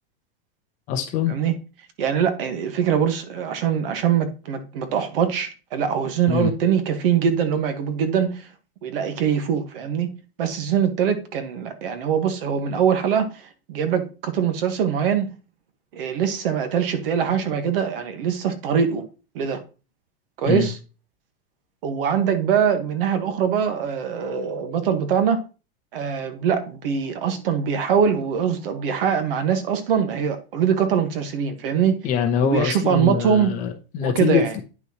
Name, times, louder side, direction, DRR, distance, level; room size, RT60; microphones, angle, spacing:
voice 1, 0.9-1.4 6.3-6.5 20.5-20.7 32.0-34.6, left 7 dB, 25° left, 0.8 m, -23 dB
voice 2, 2.0-8.5 8.8-10.1 10.4-15.3 15.9-19.0 19.3-19.6 20.4-20.7 21.8-25.4 25.9-32.0 32.4-33.5 34.0-34.5, right 7 dB, 60° right, 1.5 m, -23 dB
9.6 x 6.1 x 3.0 m
supercardioid pair, 180°, 32 cm